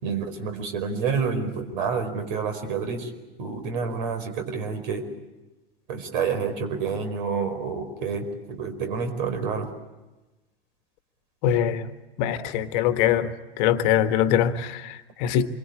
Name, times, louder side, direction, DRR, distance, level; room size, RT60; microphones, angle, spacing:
voice 1, 0.0-3.1 3.4-5.0 5.9-9.7, right 5 dB, 55° right, 4.8 m, -28 dB
voice 2, 11.4-11.9 12.2-15.5, left 10 dB, 50° left, 1.5 m, -23 dB
27.5 x 23.5 x 8.6 m
figure-of-eight pair, 90°, 30 cm